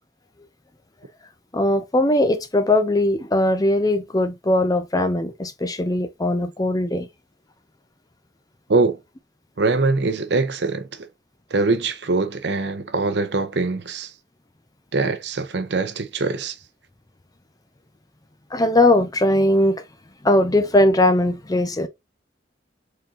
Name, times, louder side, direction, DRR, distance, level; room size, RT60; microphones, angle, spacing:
voice 1, 1.5-7.1 18.5-19.8 20.2-21.9, left 1 dB, 20° left, 0.6 m, -19 dB
voice 2, 9.6-11.1 11.5-14.1 14.9-16.6, right 3 dB, 65° right, 0.7 m, -23 dB
4.3 x 3.8 x 2.5 m
head